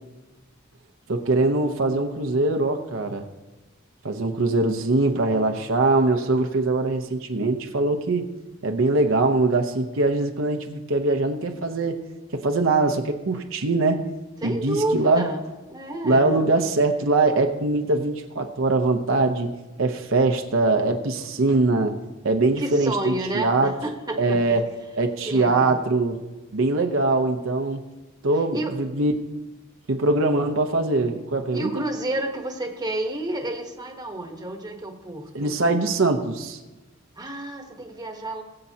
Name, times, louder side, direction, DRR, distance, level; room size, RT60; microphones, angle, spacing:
voice 1, 1.1-3.2 4.0-8.3 8.6-12.0 12.3-14.1 14.4-15.3 16.0-19.5 19.8-22.0 22.2-23.7 24.2-24.7 25.0-26.2 26.5-27.8 28.2-29.1 29.9-31.8 35.3-36.6, right 2 dB, 70° right, 5 dB, 0.8 m, -22 dB
voice 2, 14.4-15.4 15.7-16.5 22.6-24.6 25.2-25.8 28.5-28.8 31.5-35.6 37.2-38.4, right 1 dB, 20° right, 3 dB, 1.2 m, -30 dB
20.5 x 7.6 x 2.8 m, 1.1 s
head